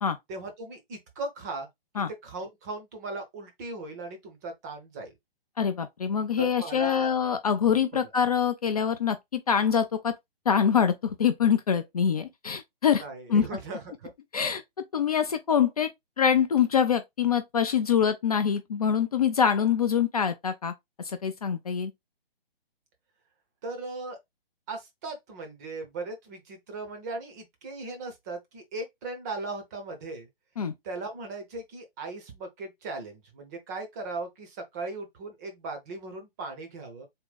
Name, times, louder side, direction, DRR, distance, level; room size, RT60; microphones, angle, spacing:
voice 1, 0.3-1.7 2.2-5.1 6.4-7.1 7.9-8.0 13.0-14.1 23.6-24.2 24.7-30.3 30.8-37.1, right 3 dB, 20° right, 0.6 m, -38 dB
voice 2, 5.6-10.1 10.5-13.0 13.3-13.4 14.3-14.6 14.9-15.9 16.2-20.7 21.0-21.9 30.6-30.7, left 7 dB, 40° left, 0.4 m, -25 dB
3.6 x 2.1 x 4.0 m
figure-of-eight pair, 135°, 30 cm